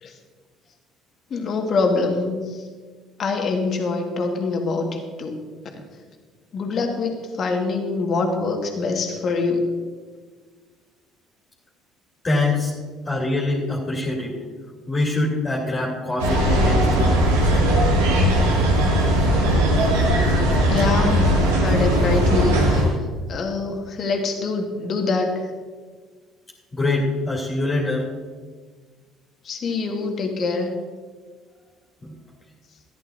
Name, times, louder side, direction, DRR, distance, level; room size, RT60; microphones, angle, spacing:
voice 1, 1.3-2.7 3.2-5.4 6.5-9.7 20.7-22.9 23.3-25.5 29.4-30.7, left 3 dB, 50° left, 3 dB, 1.8 m, -24 dB
voice 2, 12.2-12.7 13.0-14.3 14.9-17.2 26.7-28.1 32.0-32.1, left 2 dB, 30° left, -5 dB, 2.8 m, -24 dB
sound 1, 16.2-23.0, equal, 80° right, 1.5 m, -18 dB
14.5 x 11.0 x 2.7 m, 1.5 s
hypercardioid pair, 55°, 0 cm